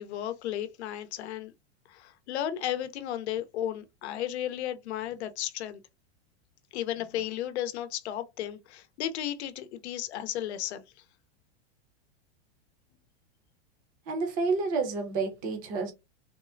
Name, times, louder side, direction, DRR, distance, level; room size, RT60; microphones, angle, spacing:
voice 1, 0.0-1.5 1.9-5.8 6.7-10.8, left 11 dB, 75° left, 0.7 m, -34 dB
voice 2, 14.1-15.9, right 4 dB, 25° right, 0.7 m, -29 dB
3.6 x 2.0 x 2.5 m
supercardioid pair, 165°, 34 cm